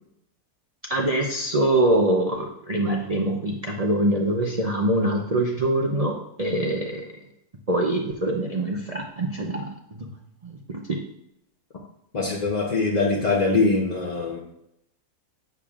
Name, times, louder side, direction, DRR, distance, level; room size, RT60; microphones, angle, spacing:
voice 1, 0.9-7.1 7.7-9.7 10.0-10.1 10.4-10.6 10.9-11.0, right 1 dB, 50° right, -1 dB, 0.4 m, -24 dB
voice 2, 12.1-14.4, left 3 dB, 40° left, -3 dB, 0.7 m, -22 dB
8.5 x 6.9 x 2.4 m, 0.78 s
omnidirectional pair, 1.7 m